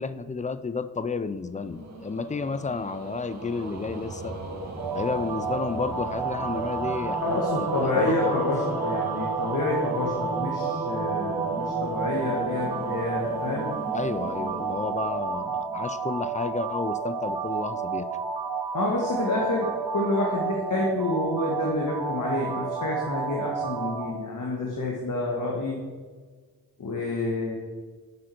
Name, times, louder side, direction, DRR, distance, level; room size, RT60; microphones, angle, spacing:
voice 1, 0.0-4.4 4.9-8.4 13.9-18.1, left 4 dB, 20° left, 14 dB, 0.4 m, -31 dB
synthchorus haunted, 1.5-15.9, right 3 dB, 40° right, 1.7 m, -35 dB
sound 1, 4.8-24.1, right 5 dB, 70° right, 1.1 m, -31 dB
voice 2, 7.2-13.7 18.7-25.8 26.8-27.6, left 2 dB, 50° left, -2 dB, 1.5 m, -28 dB
7.6 x 5.7 x 4.5 m, 1.5 s
supercardioid pair, 50°, 39 cm